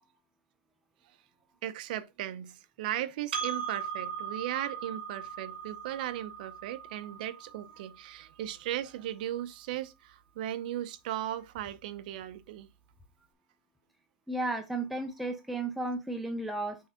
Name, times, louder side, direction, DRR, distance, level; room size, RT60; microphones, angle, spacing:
voice 1, 1.6-12.7, right 12 dB, 55° right, 0.7 m, -37 dB
Percussion, 3.3-8.1, right 7 dB, 80° right, 2.0 m, -39 dB
voice 2, 14.3-16.8, right 2 dB, ahead, 0.5 m, -33 dB
6.4 x 3.4 x 5.6 m
supercardioid pair, 170°, 6 cm